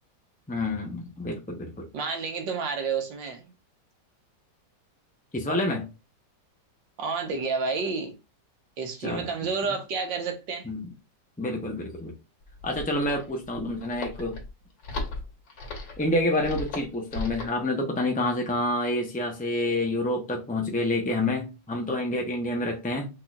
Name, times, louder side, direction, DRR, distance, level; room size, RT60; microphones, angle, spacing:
voice 1, 0.5-1.9 5.3-5.9 9.0-9.3 10.6-10.9 11.4-12.1 12.6-14.4 16.0-23.1, left 1 dB, 10° left, 0.3 m, -28 dB
voice 2, 1.9-3.5 7.0-8.1 8.8-10.7, right 4 dB, 80° right, 1.8 m, -30 dB
sound 1, 12.4-17.6, left 2 dB, 75° left, 2.2 m, -37 dB
5.9 x 3.7 x 2.4 m
omnidirectional pair, 2.0 m